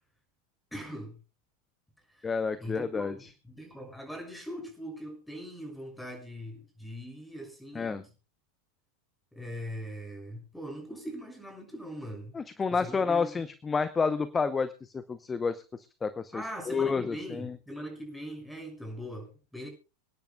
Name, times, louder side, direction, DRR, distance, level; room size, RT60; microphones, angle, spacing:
voice 1, 0.7-1.2 2.1-2.3 2.6-8.1 9.3-12.4 12.7-13.3 16.3-19.7, equal, 5° left, 6.5 m, -41 dB
voice 2, 2.2-3.3 7.7-8.0 12.3-17.6, left 5 dB, 20° left, 0.8 m, -30 dB
26.5 x 10.5 x 2.3 m
figure-of-eight pair, 85°, 0 cm